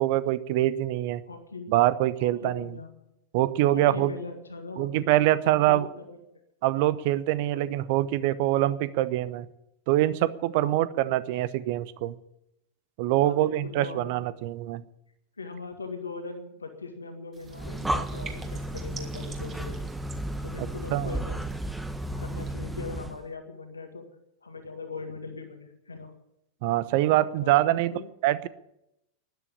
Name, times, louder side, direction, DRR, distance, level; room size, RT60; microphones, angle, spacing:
voice 1, 0.0-1.2 1.7-2.8 3.3-4.1 4.8-5.9 6.6-9.5 9.9-12.2 13.0-14.8 20.6-21.1 26.6-27.9 28.2-28.5, right 14 dB, 50° right, 17 dB, 0.8 m, -24 dB
voice 2, 1.3-1.7 2.2-2.9 3.7-5.1 5.4-6.2 7.5-8.1 10.6-11.1 13.2-14.2 15.4-19.8 20.4-21.4 22.2-24.0 24.4-26.1 27.2-28.0, left 4 dB, 75° left, 5 dB, 1.8 m, -40 dB
sound 1, 17.3-22.5, right 5 dB, 25° right, 2.6 m, -49 dB
Breathing, 17.4-23.2, right 1 dB, 5° right, 1.0 m, -33 dB
12.5 x 11.0 x 8.8 m, 0.82 s
figure-of-eight pair, 90°, 0 cm